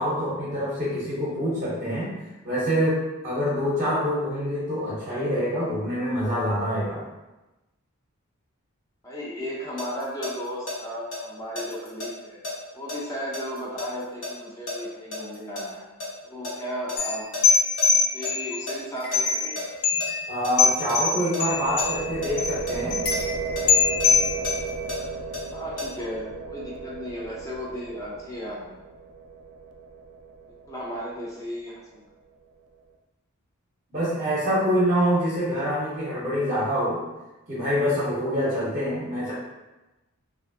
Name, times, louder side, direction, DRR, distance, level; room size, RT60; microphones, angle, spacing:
voice 1, 0.0-2.1 2.4-7.0 20.3-23.0 33.9-37.0 37.5-39.3, equal, 35° right, -8 dB, 0.7 m, -26 dB
voice 2, 9.0-12.4 12.7-15.9 16.2-17.3 17.9-19.6 25.5-28.8 30.7-32.0, equal, 15° left, -5 dB, 0.5 m, -35 dB
sound 1, 9.4-10.7 11.1-15.7 16.0-17.9 18.2-18.3 18.7-20.1 20.4-21.0 21.3-23.2 23.6-25.9, left 2 dB, 65° left, 1.3 m, -34 dB
sound 2, 17.0-18.6 19.0-19.6 19.8-20.3 20.6-22.0 22.4-22.5 22.9-24.9, left 5 dB, 80° left, 0.5 m, -23 dB
sound 3, 21.4-31.2, right 5 dB, 80° right, 0.3 m, -34 dB
3.1 x 2.5 x 2.5 m, 1.0 s
head